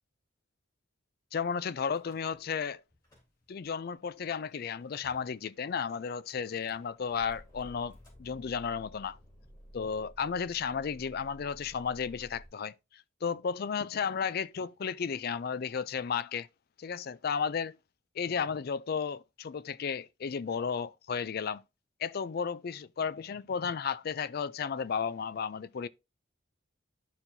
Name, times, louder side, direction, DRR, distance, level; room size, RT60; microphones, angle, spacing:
voice 1, 1.3-2.8 3.5-9.2 9.7-12.7 13.2-16.5 16.8-17.8 18.2-21.6 22.0-25.9, left 6 dB, 50° left, 0.4 m, -33 dB
Car / Engine starting / Idling, 1.9-2.7 2.9-3.7 4.4-4.5 4.6-4.7 5.0-5.3 6.3-12.5, equal, 20° left, 3.4 m, -54 dB
11.5 x 4.5 x 2.7 m
head